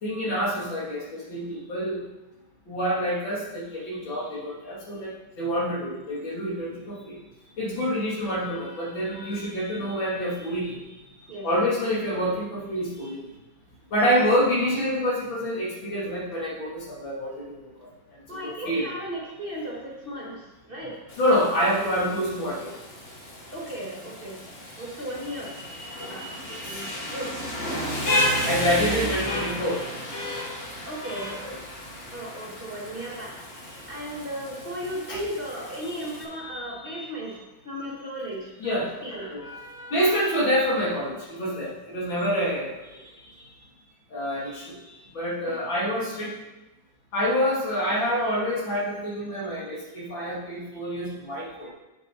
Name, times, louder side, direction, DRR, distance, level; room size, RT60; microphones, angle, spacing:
voice 1, 0.0-2.0 2.7-5.1 5.4-7.2 7.6-10.8 11.4-13.2 13.9-17.5 17.8-17.9 18.4-18.8 21.2-22.7 25.6-27.1 28.5-29.8 31.4-31.5 35.1-35.2 36.3-37.0 38.6-38.9 39.3-42.7 44.1-44.8 45.1-46.3 47.1-51.7, equal, 75° left, -5 dB, 3.3 m, -27 dB
voice 2, 18.3-21.0 23.5-24.4 24.8-25.5 26.1-26.3 26.6-27.4 28.5-29.4 30.8-31.4 32.1-33.6 33.9-39.4 45.4-45.6, equal, 30° right, -4 dB, 2.0 m, -36 dB
Rain, 21.1-36.2, left 1 dB, 30° left, 1.8 m, -33 dB
7.8 x 7.8 x 4.6 m, 1.0 s
omnidirectional pair, 2.1 m